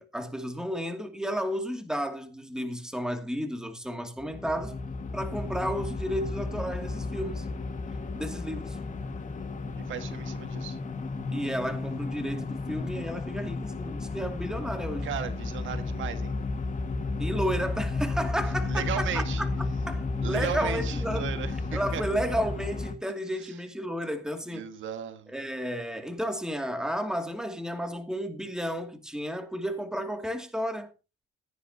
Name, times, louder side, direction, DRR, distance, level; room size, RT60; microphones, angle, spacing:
voice 1, 0.0-4.8 5.1-7.5 8.2-8.8 11.3-15.1 17.2-21.3 21.7-24.6 25.3-30.9, equal, 5° right, 2.5 m, -32 dB
sound 1, 4.2-22.9, left 3 dB, 40° left, 1.9 m, -33 dB
voice 2, 9.8-10.8 15.0-16.3 18.6-19.4 20.2-22.0 23.3-23.6 24.5-25.3, right 8 dB, 75° right, 1.7 m, -36 dB
16.0 x 10.0 x 2.9 m
cardioid pair, 90°, 20 cm